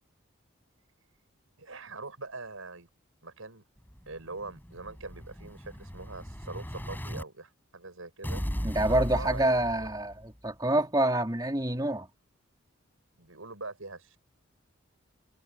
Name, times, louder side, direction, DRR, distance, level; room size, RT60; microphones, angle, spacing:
voice 1, 1.6-2.9 3.2-3.6 4.1-8.4 8.8-9.9 13.2-14.2, right 3 dB, 85° right, 6.2 m, -43 dB
Explosion, 3.9-7.2 8.2-10.3, equal, 10° left, 6.3 m, -37 dB
voice 2, 8.6-12.1, right 1 dB, 20° right, 3.4 m, -27 dB
head